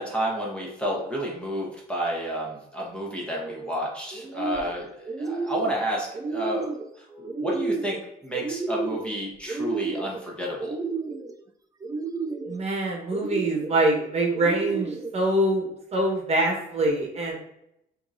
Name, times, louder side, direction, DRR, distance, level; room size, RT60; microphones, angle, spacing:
voice 1, 0.0-6.7 7.1-8.0 8.2-10.8, equal, 5° left, -3 dB, 1.2 m, -30 dB
sound 1, 3.2-3.7 4.1-4.8 5.0-5.8 6.1-6.9 7.3-8.0 8.3-9.1 9.5-10.2 10.6-11.3 11.8-12.6 13.1-13.8 14.3-15.1, right 4 dB, 20° right, 0.4 m, -31 dB
voice 2, 12.5-17.3, right 1 dB, 40° right, 0 dB, 1.2 m, -24 dB
5.6 x 2.9 x 2.6 m, 0.80 s
cardioid pair, 110°, 17 cm